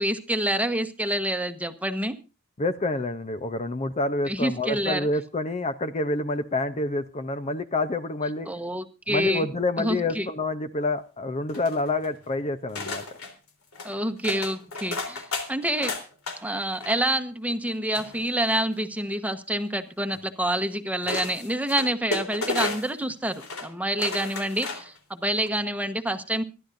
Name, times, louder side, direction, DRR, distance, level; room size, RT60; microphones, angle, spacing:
voice 1, 0.0-2.2 4.3-5.1 8.5-9.5 9.8-10.3 13.8-15.2 15.5-15.9 16.4-26.4, right 1 dB, 5° right, 1.1 m, -27 dB
voice 2, 2.6-8.5 9.1-13.0, left 2 dB, 30° left, 0.7 m, -28 dB
sound 1, 11.5-12.2 12.8-13.3 13.7-13.9 14.2-16.4 16.7-17.1 17.9-18.7 20.1-20.2 21.0-23.0 23.3-23.7 24.0-25.0 25.4-25.5, left 3 dB, 80° left, 3.5 m, -33 dB
26.0 x 11.5 x 2.6 m
head